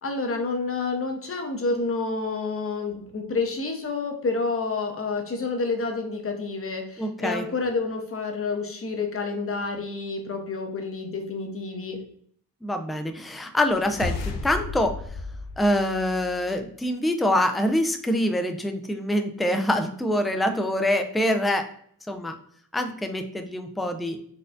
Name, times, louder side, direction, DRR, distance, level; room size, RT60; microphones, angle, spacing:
voice 1, 0.0-12.0, left 3 dB, 35° left, 4 dB, 0.8 m, -29 dB
voice 2, 7.0-7.4 12.6-15.0 15.6-21.7 22.1-22.3 22.7-24.2, left 1 dB, ahead, 6 dB, 0.3 m, -25 dB
sound 1, 13.7-16.4, left 4 dB, 80° left, 0.6 m, -34 dB
4.3 x 2.3 x 2.5 m, 0.62 s
cardioid pair, 75°, 39 cm